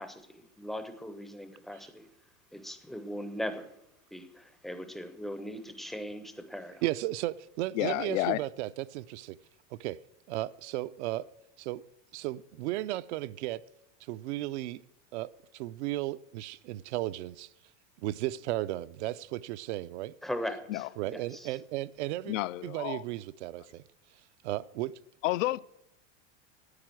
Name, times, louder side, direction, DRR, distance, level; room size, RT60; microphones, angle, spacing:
voice 1, 0.0-2.1 2.5-3.7 4.1-6.8 20.2-21.6, equal, ahead, 0.5 m, -39 dB
voice 2, 6.8-9.4 9.8-10.0 10.3-11.3 11.6-11.8 12.1-13.6 14.1-14.8 15.1-17.5 18.0-20.1 21.0-22.4 22.6-23.8 24.4-24.9, right 16 dB, 65° right, 0.5 m, -35 dB
voice 3, 7.7-8.4 20.7-20.9 22.3-23.0 25.2-25.6, left 17 dB, 80° left, 0.5 m, -30 dB
9.7 x 9.0 x 7.6 m
supercardioid pair, 160°, 38 cm